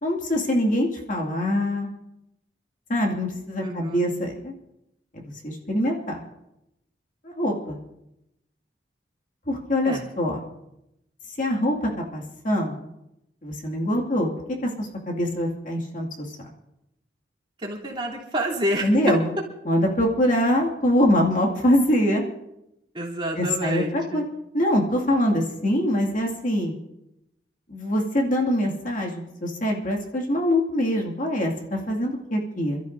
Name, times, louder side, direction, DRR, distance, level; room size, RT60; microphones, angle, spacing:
voice 1, 0.0-1.9 2.9-4.5 5.1-6.2 7.2-7.8 9.5-10.4 11.4-12.9 13.4-14.3 14.6-16.1 18.8-19.3 19.6-22.2 23.4-24.2 24.5-26.8 27.7-32.8, left 1 dB, 45° left, -1 dB, 2.3 m, -24 dB
voice 2, 3.6-4.0 9.8-10.0 17.6-18.9 22.9-24.2, right 1 dB, 30° right, -5 dB, 3.3 m, -29 dB
28.0 x 13.5 x 2.7 m, 0.88 s
head